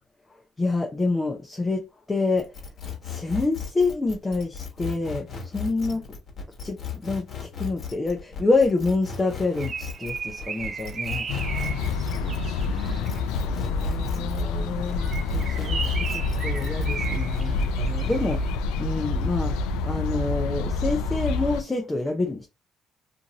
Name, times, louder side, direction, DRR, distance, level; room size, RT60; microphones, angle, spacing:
voice 1, 0.6-2.5 3.0-6.0 6.6-11.3 13.2-22.5, left 3 dB, 20° left, 0.6 m, -27 dB
sound 1, 2.4-14.5 14.9-17.7, left 7 dB, 50° left, 1.2 m, -36 dB
Bird, 9.2-13.3 14.9-18.4, right 5 dB, 45° right, 0.4 m, -36 dB
sound 2, 11.3-21.6, left 3 dB, 90° left, 0.3 m, -27 dB
voice 2, 11.9-14.0, left 6 dB, 65° left, 0.7 m, -43 dB
2.5 x 2.5 x 2.9 m
supercardioid pair, 75°, 0 cm